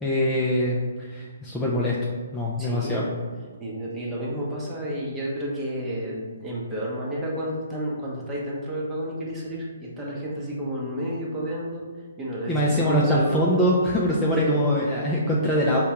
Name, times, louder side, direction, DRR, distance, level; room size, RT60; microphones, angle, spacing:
voice 1, 0.0-2.0 2.3-3.0 12.5-15.8, equal, 15° left, -5 dB, 0.4 m, -23 dB
voice 2, 2.6-3.1 3.6-11.9 12.2-13.4 14.3-14.7, equal, 15° right, -4 dB, 0.8 m, -31 dB
4.4 x 2.2 x 2.9 m, 1.5 s
hypercardioid pair, 135°, 0 cm